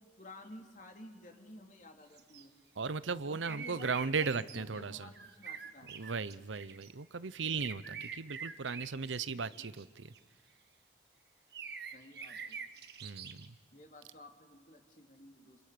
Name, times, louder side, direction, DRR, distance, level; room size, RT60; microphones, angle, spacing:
voice 1, 0.0-2.5 3.3-5.9 9.3-9.7 11.9-12.6 13.7-15.7, left 1 dB, 45° left, 3 dB, 3.3 m, -53 dB
sound 1, 2.2-2.4 3.4-4.6 5.1-6.9 7.6-10.2 11.5-13.5, right 6 dB, 60° right, 1.6 m, -46 dB
voice 2, 2.8-5.1 5.9-10.1 13.0-13.6, right 5 dB, 90° right, 16 dB, 0.8 m, -37 dB
27.5 x 27.0 x 6.8 m, 1.4 s
head